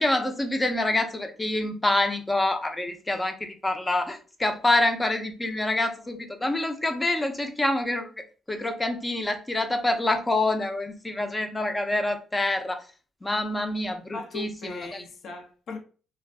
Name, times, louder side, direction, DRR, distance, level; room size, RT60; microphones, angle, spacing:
voice 1, 0.0-12.8 13.2-15.0, left 2 dB, 15° left, 0.6 m, -26 dB
voice 2, 14.1-15.8, left 3 dB, 65° left, 0.8 m, -38 dB
2.5 x 2.3 x 3.4 m
cardioid pair, 90°, 0 cm